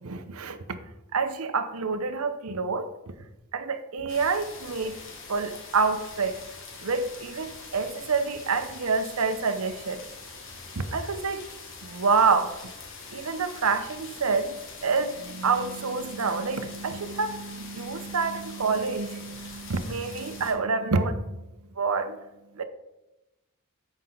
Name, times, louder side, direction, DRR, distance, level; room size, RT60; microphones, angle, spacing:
voice 1, 0.0-0.6 1.1-2.9 3.5-4.9 5.3-6.4 6.8-10.0 10.8-11.5 11.8-12.5 13.1-14.5 14.8-21.4 21.8-22.2 22.6-22.7, right 4 dB, 85° right, 10 dB, 0.8 m, -27 dB
sound 1, 4.1-20.5, left 4 dB, 60° left, 1.7 m, -44 dB
13.5 x 5.6 x 3.9 m, 0.98 s
head